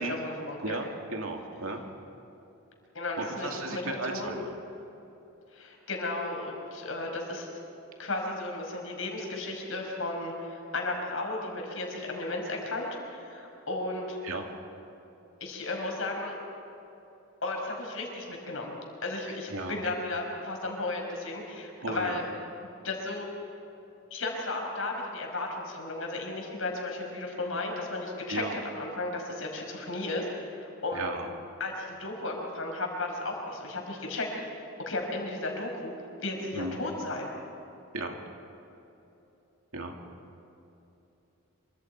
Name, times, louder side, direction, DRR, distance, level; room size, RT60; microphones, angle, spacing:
voice 1, 0.0-0.8 2.9-4.3 5.5-7.5 8.0-14.2 15.4-16.3 17.4-18.7 19.0-22.2 22.8-23.3 24.1-31.1 31.6-35.9 36.2-37.3, left 2 dB, 70° left, 0 dB, 5.3 m, -34 dB
voice 2, 0.6-1.8 3.2-4.5 14.2-14.5 19.5-19.8 21.8-22.2 28.3-28.6 30.9-31.3 36.5-36.8 37.9-38.2 39.7-40.0, right 2 dB, 80° right, 2 dB, 2.5 m, -35 dB
26.5 x 25.0 x 4.8 m, 3.0 s
head